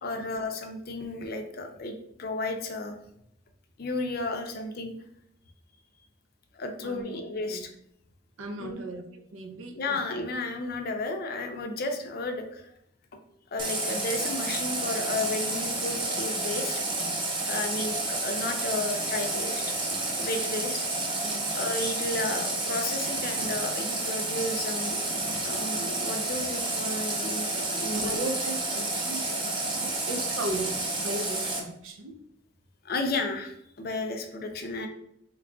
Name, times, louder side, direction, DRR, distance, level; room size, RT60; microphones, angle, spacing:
voice 1, 0.0-3.0 3.8-4.9 6.5-7.7 8.6-8.8 9.8-12.7 13.5-16.8 17.5-19.6 20.1-20.9 21.5-25.0 25.4-28.2 32.8-34.9, left 2 dB, 50° left, 5 dB, 0.5 m, -33 dB
voice 2, 4.3-4.6 6.8-7.2 7.5-7.7 8.4-10.0 21.2-21.5 27.9-32.2, right 2 dB, 80° right, 6 dB, 0.5 m, -37 dB
Water tap faucet, 13.6-31.6, right 2 dB, 25° right, 0.5 m, -30 dB
3.1 x 2.3 x 3.7 m, 0.73 s
head